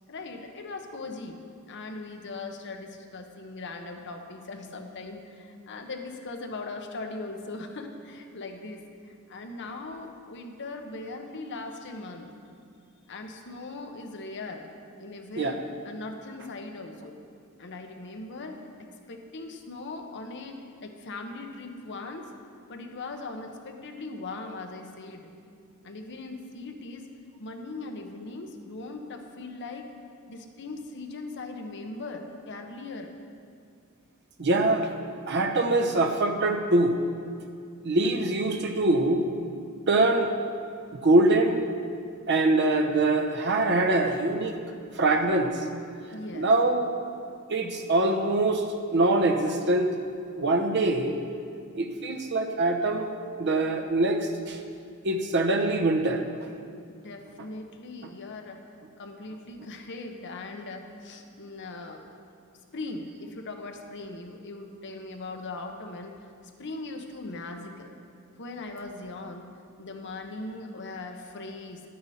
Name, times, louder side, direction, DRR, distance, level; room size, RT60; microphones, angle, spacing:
voice 1, 0.1-1.4 1.7-12.3 13.1-14.7 15.0-17.2 17.6-18.6 19.1-22.3 22.7-25.3 25.8-27.1 27.4-29.9 30.3-33.1 46.1-46.5 56.9-58.6 59.0-62.1 62.7-66.2 66.6-67.9 68.4-69.5 69.8-71.8, left 3 dB, 55° left, 4 dB, 1.0 m, -39 dB
voice 2, 34.4-34.9 35.3-37.0 37.8-39.2 39.9-40.3 41.0-41.6 42.3-44.5 44.9-45.7 46.3-46.9 47.5-49.9 50.4-51.2 51.7-53.1 53.4-54.6 55.0-56.2, right 2 dB, 55° right, 5 dB, 0.8 m, -23 dB
11.0 x 9.5 x 4.3 m, 2.3 s
head